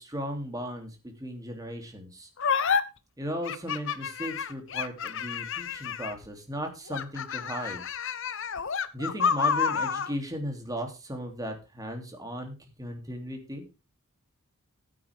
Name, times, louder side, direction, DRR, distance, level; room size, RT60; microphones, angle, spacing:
voice 1, 0.0-2.3 3.2-7.8 8.9-13.6, equal, 15° right, 3 dB, 2.9 m, -36 dB
sound 1, 2.4-2.8 3.4-6.3 6.9-10.1, left 6 dB, 60° left, 0.9 m, -29 dB
14.5 x 8.8 x 3.6 m, 0.29 s
head